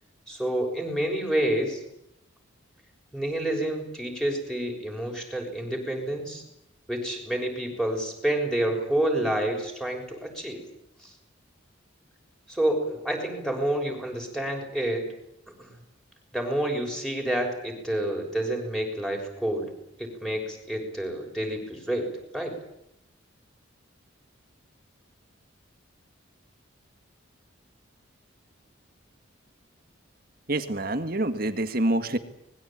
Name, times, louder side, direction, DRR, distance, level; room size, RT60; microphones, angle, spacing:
voice 1, 0.3-1.8 3.1-6.4 6.9-10.6 11.0-11.1 12.5-15.1 15.6-15.7 16.3-19.7 20.0-22.6, right 1 dB, 5° left, 1 dB, 6.4 m, -28 dB
voice 2, 30.5-32.2, right 1 dB, 45° right, 8 dB, 1.8 m, -26 dB
25.0 x 21.5 x 8.9 m, 0.80 s
head